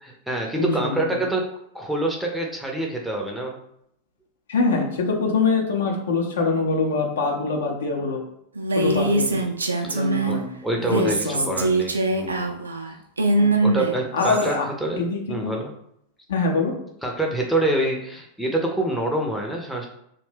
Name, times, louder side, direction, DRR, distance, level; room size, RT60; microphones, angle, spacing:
voice 1, 0.0-1.5 1.7-3.6 8.8-9.5 9.8-12.6 13.6-15.0 15.3-15.7 17.0-19.9, right 1 dB, ahead, 0 dB, 0.5 m, -26 dB
voice 2, 0.6-0.9 4.5-8.2 8.8-9.4 9.8-10.5 10.9-11.6 13.4-13.5 14.1-14.7 15.0-15.5 16.3-16.7, left 4 dB, 65° left, 1 dB, 0.6 m, -24 dB
Female speech woman speaking, 8.6-10.4 10.8-14.5, right 2 dB, 75° right, 0.3 m, -23 dB
2.6 x 2.1 x 3.3 m, 0.74 s
figure-of-eight pair, 90°, 0 cm